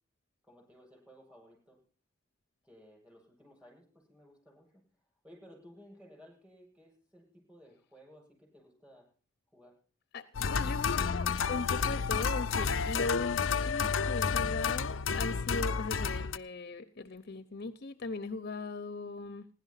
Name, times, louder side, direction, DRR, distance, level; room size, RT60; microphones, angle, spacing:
voice 1, 0.5-1.8 2.6-4.8 5.2-9.1 9.5-9.8, equal, 10° right, -1 dB, 7.7 m, -57 dB
sound 1, 10.3-16.4, left 6 dB, 90° left, 0.6 m, -31 dB
voice 2, 10.5-19.5, left 3 dB, 55° left, 9 dB, 0.8 m, -39 dB
16.5 x 11.5 x 5.7 m, 0.41 s
head